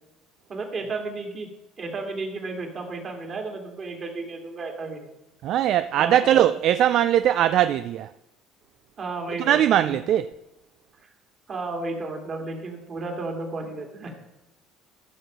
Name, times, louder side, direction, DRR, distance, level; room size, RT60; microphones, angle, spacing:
voice 1, 0.5-1.5 1.8-5.1 6.0-6.5 9.0-10.0 11.5-14.1, right 3 dB, 40° right, 2.6 m, -33 dB
voice 2, 5.4-8.1 9.4-10.3, right 11 dB, 60° right, 0.3 m, -20 dB
14.0 x 6.1 x 5.2 m
supercardioid pair, 105°, 0 cm